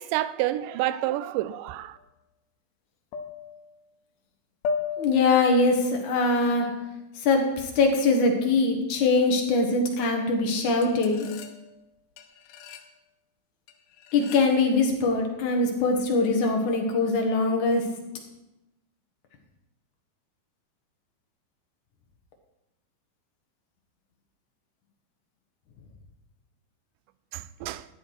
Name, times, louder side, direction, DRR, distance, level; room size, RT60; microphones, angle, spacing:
voice 1, 0.0-2.0 27.3-27.9, right 14 dB, 80° right, 2.0 m, -29 dB
sound 1, 2.0-2.1 3.1-3.8 4.6-5.5 7.3-7.6 9.1-9.6 10.0-10.3 10.8-11.8 12.2-12.9 13.7-14.6, left 5 dB, 90° left, 2.9 m, -36 dB
voice 2, 5.0-6.7 7.2-11.3 14.1-17.8, left 3 dB, 60° left, 2.6 m, -22 dB
14.0 x 10.5 x 4.7 m
omnidirectional pair, 4.3 m